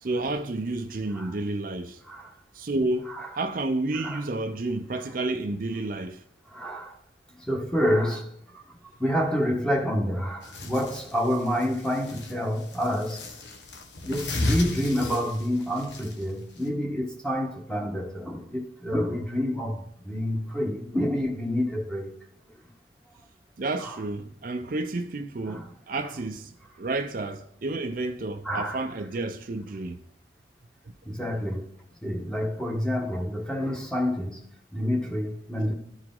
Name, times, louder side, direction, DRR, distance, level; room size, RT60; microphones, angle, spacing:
voice 1, 0.0-2.0 2.5-6.2 23.6-30.0, right 2 dB, 50° right, 0.5 m, -30 dB
voice 2, 6.5-6.9 7.5-8.3 8.5-8.6 9.0-13.2 14.0-22.1 23.8-24.0 25.4-25.7 28.4-28.8 31.1-31.7 32.0-34.4 34.7-35.7, equal, 5° left, 1.2 m, -28 dB
sound 1, 10.4-16.7, left 2 dB, 80° left, 1.2 m, -35 dB
13.0 x 4.8 x 3.7 m
head